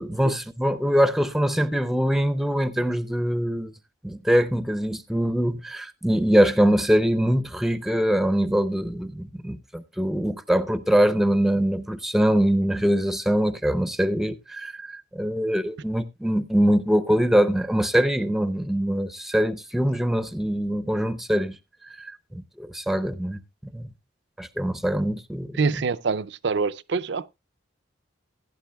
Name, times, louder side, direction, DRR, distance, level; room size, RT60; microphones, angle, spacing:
voice 1, 0.0-3.7 4.0-21.6 21.9-23.9 24.4-25.6, equal, ahead, 0.5 m, -23 dB
voice 2, 25.6-27.3, right 4 dB, 60° right, 0.5 m, -25 dB
16.0 x 9.8 x 2.3 m
head